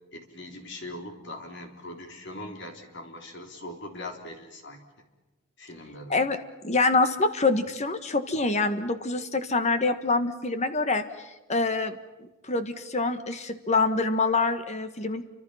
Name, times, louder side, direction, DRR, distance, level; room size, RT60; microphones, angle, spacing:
voice 1, 0.1-4.8 5.6-6.2, left 1 dB, 55° left, 3 dB, 3.7 m, -41 dB
voice 2, 6.6-11.0 11.5-12.0 12.5-15.2, left 3 dB, 30° left, 9 dB, 1.5 m, -25 dB
29.5 x 25.5 x 5.8 m, 1.1 s
head